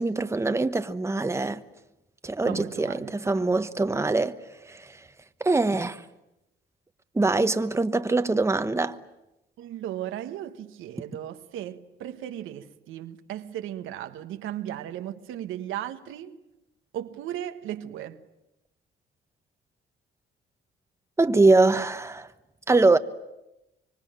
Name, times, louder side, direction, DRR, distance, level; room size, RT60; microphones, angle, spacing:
voice 1, 0.0-1.6 2.2-4.4 4.7-4.9 5.4-6.0 7.1-9.0 21.2-22.3 22.7-23.0, right 3 dB, 15° right, 1.1 m, -23 dB
voice 2, 2.5-3.5 9.6-16.4 16.9-18.3, right 11 dB, 90° right, 1.4 m, -36 dB
25.5 x 24.0 x 9.1 m
cardioid pair, 90°, 20 cm